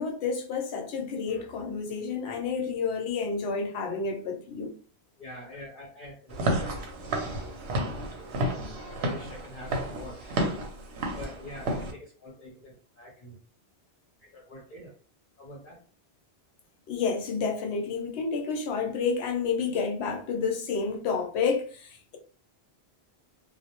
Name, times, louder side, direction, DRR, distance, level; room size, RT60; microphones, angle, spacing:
voice 1, 0.0-4.7 16.9-22.2, left 5 dB, 80° left, 0.9 m, -30 dB
voice 2, 5.2-7.8 8.1-10.7 11.1-13.4 14.2-15.0 15.4-15.8, left 1 dB, 55° left, 0.8 m, -46 dB
Walk footsteps / Siren, 6.3-11.9, right 1 dB, 75° right, 0.8 m, -31 dB
2.2 x 2.0 x 2.9 m
omnidirectional pair, 1.1 m